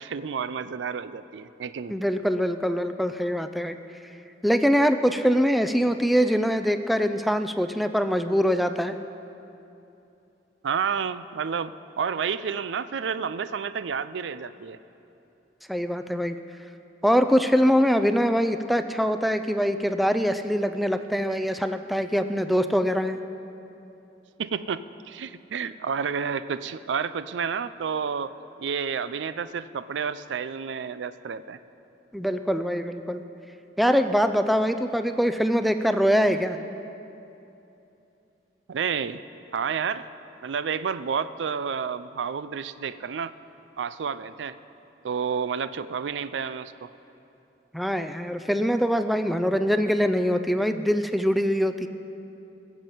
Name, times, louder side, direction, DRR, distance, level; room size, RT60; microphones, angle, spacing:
voice 1, 0.0-1.9 10.6-14.8 24.4-31.6 38.7-39.2 39.5-40.1 40.4-43.3 43.8-44.6 45.0-46.9, right 6 dB, 80° right, 14 dB, 0.4 m, -30 dB
voice 2, 1.9-3.8 4.4-8.9 15.7-16.4 17.0-23.2 32.1-33.2 33.8-36.6 47.7-51.9, equal, ahead, 8 dB, 0.4 m, -23 dB
21.0 x 7.5 x 5.5 m, 2.8 s
head